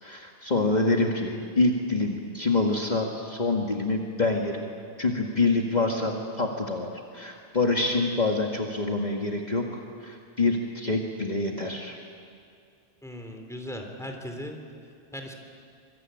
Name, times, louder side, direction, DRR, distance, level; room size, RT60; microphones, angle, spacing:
voice 1, 0.0-4.7 5.0-12.0, left 3 dB, 40° left, 0 dB, 2.0 m, -26 dB
voice 2, 13.0-14.6 15.1-15.3, equal, 5° left, 3 dB, 3.2 m, -38 dB
25.5 x 22.5 x 9.1 m, 2.4 s
omnidirectional pair, 1.1 m